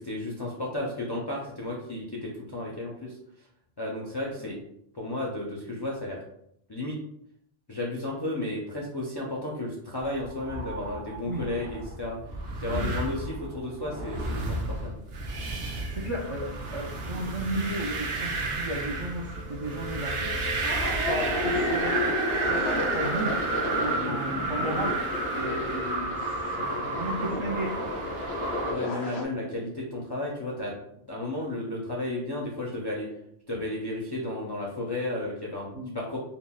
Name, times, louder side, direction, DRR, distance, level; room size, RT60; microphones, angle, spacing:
voice 1, 0.0-3.2 3.8-4.6 4.9-6.2 6.7-7.0 7.7-12.2 12.6-15.1 24.0-24.2 28.7-30.8 31.1-33.1 33.5-35.7 35.9-36.2, left 1 dB, 45° left, -4 dB, 0.3 m, -33 dB
sound 1, 10.2-28.7, right 2 dB, 75° right, 0.8 m, -32 dB
voice 2, 15.6-20.3 21.1-23.4 23.8-25.0 25.3-27.9 35.7-35.9, right 1 dB, 60° right, -2 dB, 0.3 m, -34 dB
sound 2, 19.4-29.2, left 1 dB, 90° left, 0.9 m, -32 dB
3.6 x 2.0 x 2.2 m, 0.72 s
omnidirectional pair, 1.0 m